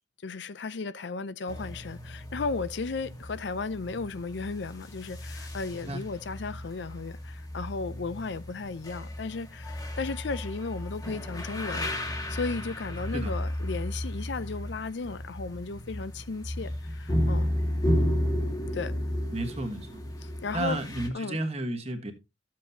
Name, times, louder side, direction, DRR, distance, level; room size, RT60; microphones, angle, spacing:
voice 1, 0.2-11.9 12.3-17.5 18.7-18.9 20.2-20.8 21.1-21.4, left 4 dB, 65° left, 0.5 m, -35 dB
sound 1, 1.5-21.1, left 1 dB, 20° left, 1.4 m, -33 dB
voice 2, 19.3-20.0 20.5-22.1, right 1 dB, 30° right, 1.4 m, -32 dB
13.5 x 7.5 x 2.8 m
head